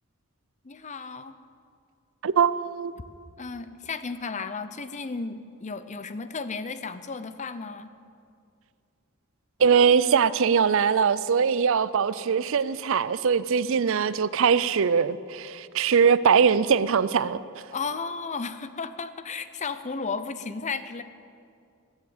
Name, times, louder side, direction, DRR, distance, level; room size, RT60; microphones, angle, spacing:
voice 1, 0.6-1.4 3.4-7.9 17.7-21.0, left 4 dB, 35° left, 0.6 m, -34 dB
voice 2, 2.2-2.9 9.6-17.4, right 6 dB, 65° right, 0.5 m, -22 dB
21.0 x 7.3 x 7.9 m
head